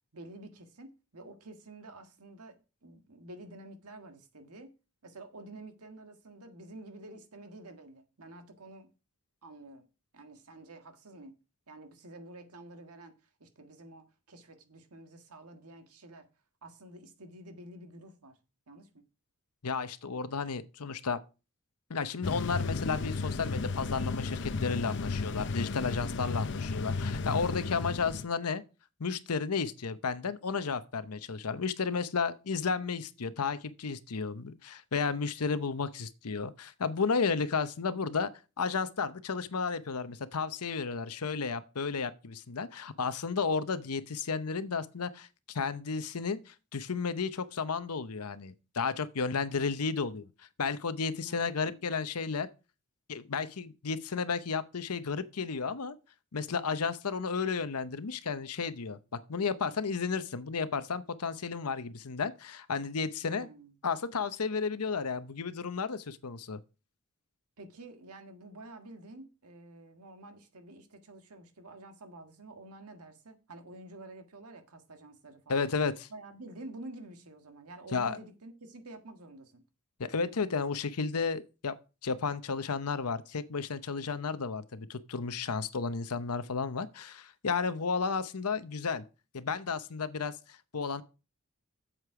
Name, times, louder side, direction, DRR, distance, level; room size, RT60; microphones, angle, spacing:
voice 1, 0.1-2.6 2.8-4.7 5.0-8.9 9.4-9.9 10.1-11.4 11.7-13.1 13.4-16.3 16.6-18.4 18.7-19.0 27.6-27.9 51.2-51.8 63.2-63.7 67.6-75.7 76.1-79.6 87.7-88.0, right 2 dB, 90° right, 1.6 m, -49 dB
voice 2, 19.6-21.2 21.9-28.6 29.0-38.3 38.6-50.3 50.6-52.5 53.1-55.9 56.3-63.5 63.8-66.6 75.5-76.1 77.9-78.2 80.0-81.7 82.0-89.0 89.3-91.0, left 5 dB, 85° left, 0.8 m, -33 dB
sound 1, 22.2-28.3, left 3 dB, 55° left, 0.6 m, -34 dB
8.1 x 7.5 x 4.8 m
head